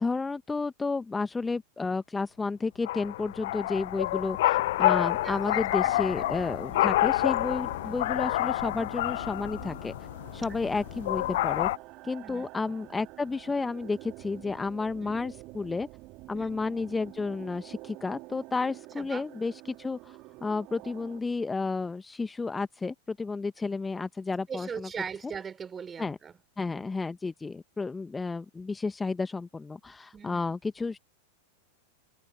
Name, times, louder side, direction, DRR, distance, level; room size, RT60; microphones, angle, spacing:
voice 1, 0.0-9.9 10.3-11.7 12.0-15.9 16.3-24.9 26.0-26.2 26.6-31.0, left 4 dB, 10° left, 1.3 m, -32 dB
sound 1, 2.8-11.8, left 16 dB, 55° left, 0.8 m, -28 dB
voice 2, 5.2-5.9 6.7-6.9 7.8-8.0 10.5-10.8 12.2-12.5 15.0-15.2 16.3-16.5 19.0-19.2 24.5-26.3 26.8-26.9 30.1-30.4, right 6 dB, 20° right, 5.0 m, -40 dB
sound 2, 5.8-21.2, right 22 dB, 40° right, 4.5 m, -48 dB
figure-of-eight pair, 90°, 0 cm